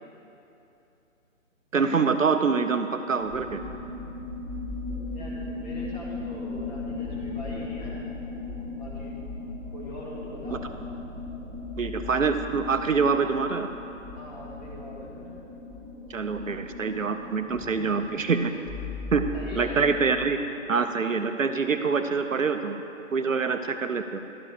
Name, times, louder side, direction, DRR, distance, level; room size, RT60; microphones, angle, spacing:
voice 1, 1.7-3.6 10.5-10.6 11.8-13.7 16.1-18.5 19.1-19.2 19.6-20.4 20.7-22.8 23.1-24.2, right 5 dB, 70° right, 8 dB, 0.7 m, -25 dB
sound 1, 3.2-20.4, left 3 dB, 5° left, 1.1 m, -37 dB
voice 2, 5.1-8.0 8.7-9.2 9.7-10.7 14.2-15.4 19.3-19.8, left 1 dB, 30° left, -5 dB, 2.3 m, -41 dB
12.0 x 6.9 x 5.0 m, 2.9 s
figure-of-eight pair, 140°, 40 cm